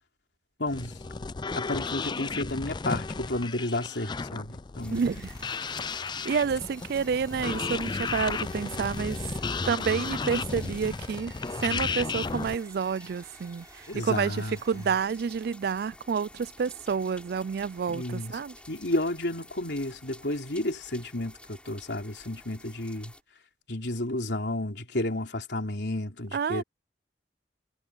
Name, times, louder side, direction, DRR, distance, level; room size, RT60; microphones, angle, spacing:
voice 1, 0.6-1.0 1.5-5.0 13.9-14.9 17.9-18.4 18.7-23.1 23.7-26.6, left 1 dB, 70° left, 3.6 m, -32 dB
sound 1, 0.7-12.6, left 4 dB, 25° left, 0.4 m, -34 dB
sound 2, 4.8-23.2, left 1 dB, 5° left, 7.0 m, -51 dB
sound 3, 4.9-15.1, right 4 dB, 20° right, 6.6 m, -54 dB
voice 2, 4.9-5.3 6.2-9.2 9.6-11.3 11.6-13.7 13.9-14.4 14.7-18.5 26.3-26.6, right 6 dB, 60° right, 0.4 m, -29 dB
head